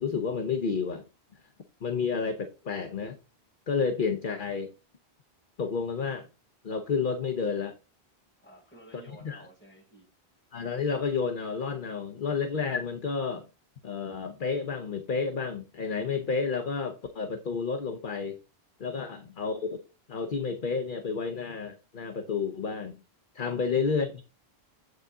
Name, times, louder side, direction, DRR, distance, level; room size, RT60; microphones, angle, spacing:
voice 1, 0.0-1.0 1.8-3.2 3.7-4.7 5.6-6.3 6.6-7.8 9.2-9.4 10.5-13.4 13.8-18.4 18.8-19.8 20.1-23.0 23.3-24.2, left 5 dB, 55° left, 1.0 m, -30 dB
voice 2, 8.4-10.1 18.8-19.1 23.4-23.6, right 1 dB, 10° left, 5.5 m, -53 dB
8.0 x 6.6 x 3.7 m
omnidirectional pair, 1.1 m